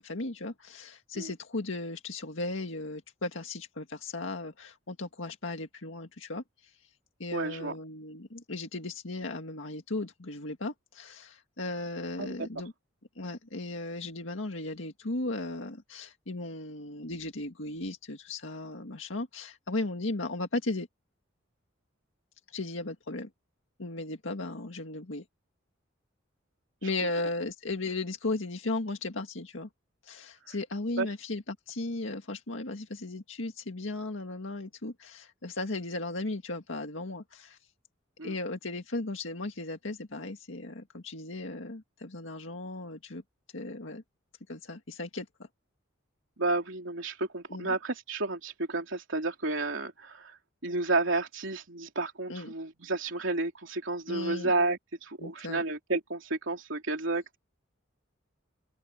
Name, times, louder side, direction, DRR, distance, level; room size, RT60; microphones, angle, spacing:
voice 1, 0.0-6.7 7.2-12.7 13.2-20.9 22.5-23.3 23.8-25.2 26.8-29.7 30.0-37.6 38.2-43.2 43.5-44.0 44.5-45.5 47.5-47.8 52.3-52.5 54.1-54.5 55.2-55.6, left 2 dB, 85° left, 1.9 m, -36 dB
voice 2, 7.3-7.7 12.2-12.5 31.0-31.1 38.2-38.3 46.4-50.4 50.6-57.4, right 2 dB, 80° right, 3.1 m, -31 dB
open air
head